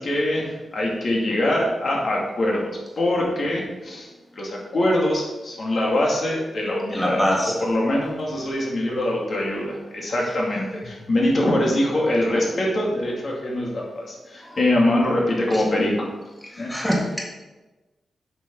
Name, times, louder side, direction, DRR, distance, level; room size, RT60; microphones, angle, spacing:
voice 1, 0.0-2.7 3.0-4.1 4.4-7.2 7.6-16.1 16.6-16.7, left 1 dB, 55° left, -3 dB, 2.5 m, -23 dB
voice 2, 6.9-7.6 14.5-14.6 15.5-15.6 16.5-17.3, equal, 5° left, -2 dB, 1.8 m, -24 dB
8.1 x 6.6 x 4.7 m, 1.1 s
cardioid pair, 85°, 0 cm